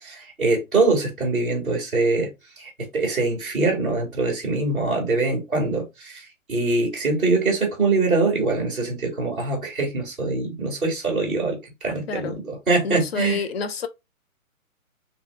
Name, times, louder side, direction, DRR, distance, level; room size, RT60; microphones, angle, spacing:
voice 1, 0.0-13.4, right 3 dB, ahead, 0.6 m, -23 dB
voice 2, 12.1-12.4 12.8-13.9, left 5 dB, 50° left, 0.5 m, -28 dB
2.8 x 2.2 x 3.3 m
hypercardioid pair, 145°, 42 cm